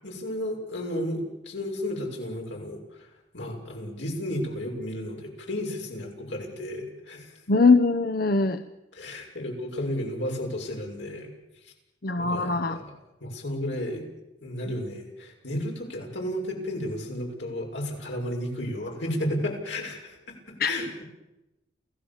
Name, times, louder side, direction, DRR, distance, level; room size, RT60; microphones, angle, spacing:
voice 1, 0.0-3.1 3.3-7.3 8.9-11.3 11.6-11.7 12.2-12.9 13.2-14.0 14.4-21.0, left 1 dB, 85° left, 0 dB, 6.6 m, -33 dB
voice 2, 7.5-8.6 12.0-12.8 20.6-20.7, left 3 dB, 55° left, 7 dB, 0.9 m, -21 dB
28.5 x 17.0 x 7.3 m, 0.95 s
head